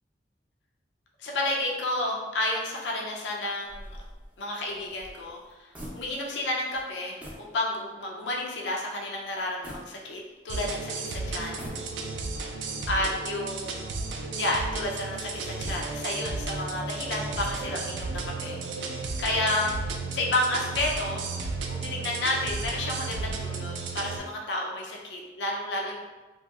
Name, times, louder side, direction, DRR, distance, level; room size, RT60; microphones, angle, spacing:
voice 1, 1.2-3.9 4.4-5.7 5.9-11.6 12.9-13.9 14.3-19.8 20.1-21.2 21.7-26.0, left 1 dB, 80° left, -1 dB, 0.5 m, -31 dB
sound 1, 3.6-6.5 6.7-6.9 7.2-7.5 8.0-8.1 9.6-10.6 11.4-12.3, equal, 10° right, 0.5 m, -44 dB
sound 2, 10.5-24.2, right 3 dB, 85° right, 0.4 m, -33 dB
2.9 x 2.7 x 2.3 m, 1.2 s
head